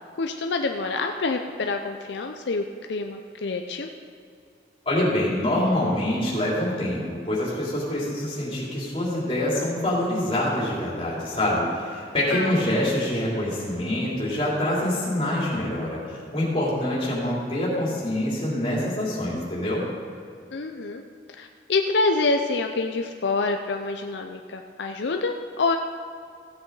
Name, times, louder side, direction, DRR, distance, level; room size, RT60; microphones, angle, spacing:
voice 1, 0.2-3.9 12.3-12.6 20.5-21.0 21.4-25.8, left 3 dB, 80° left, 4 dB, 0.6 m, -27 dB
voice 2, 4.8-19.8, left 1 dB, 30° left, -6 dB, 3.2 m, -25 dB
15.5 x 8.1 x 4.0 m, 2.4 s
head